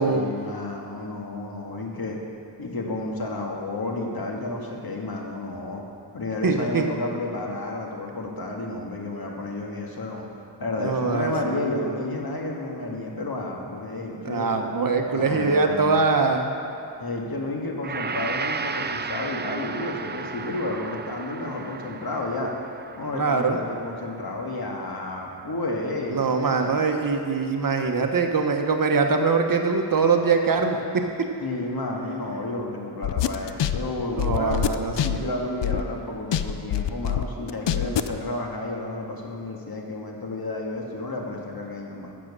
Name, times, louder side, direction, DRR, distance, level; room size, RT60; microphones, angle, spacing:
voice 1, 0.0-2.2 2.6-5.8 6.1-10.3 10.6-14.5 15.0-16.0 17.0-22.5 22.9-26.7 31.4-34.6 35.0-42.1, left 2 dB, 55° left, 0 dB, 2.0 m, -31 dB
voice 2, 6.4-6.9 10.8-11.6 14.2-16.5 23.1-23.6 26.1-31.0 34.2-35.2, right 4 dB, 45° right, 4 dB, 1.2 m, -23 dB
Gong, 17.8-26.3 26.6-26.8, right 5 dB, 25° right, 0.5 m, -35 dB
sound 1, 33.0-36.0 36.3-38.2, left 10 dB, 70° left, 0.6 m, -25 dB
12.5 x 7.6 x 6.7 m, 2.7 s
cardioid pair, 80°, 45 cm